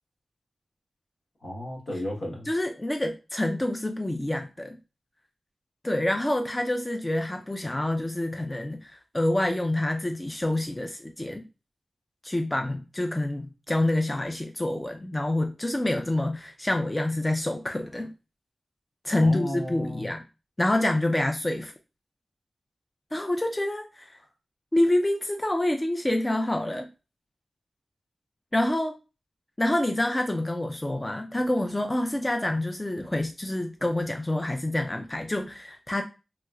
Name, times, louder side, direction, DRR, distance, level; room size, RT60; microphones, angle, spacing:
voice 1, 1.4-2.5 19.2-20.1, left 1 dB, 70° left, -2 dB, 1.2 m, -34 dB
voice 2, 2.5-4.8 5.8-11.4 12.2-18.1 19.0-20.2 20.6-21.7 23.1-24.2 24.7-26.9 28.5-29.0 29.6-36.0, left 1 dB, 20° left, 4 dB, 0.4 m, -27 dB
3.0 x 3.0 x 2.3 m, 0.30 s
wide cardioid pair, 60°, 0 cm